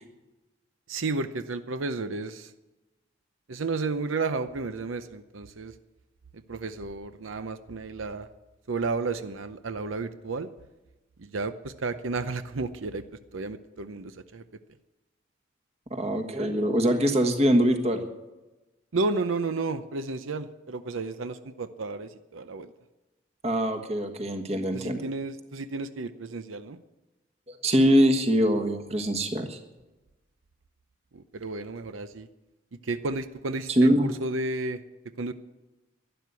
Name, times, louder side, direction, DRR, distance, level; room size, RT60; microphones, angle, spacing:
voice 1, 0.9-2.5 3.5-5.7 6.3-8.3 8.7-10.5 11.2-13.0 13.3-14.4 17.1-17.2 18.9-22.7 24.7-26.8 31.1-32.3 32.8-34.8 35.2-35.3, right 3 dB, 90° right, 11 dB, 0.7 m, -32 dB
voice 2, 15.9-18.0 23.4-25.0 27.6-29.6 33.7-34.1, equal, 30° right, 6 dB, 1.4 m, -23 dB
12.0 x 11.0 x 8.2 m, 1.1 s
head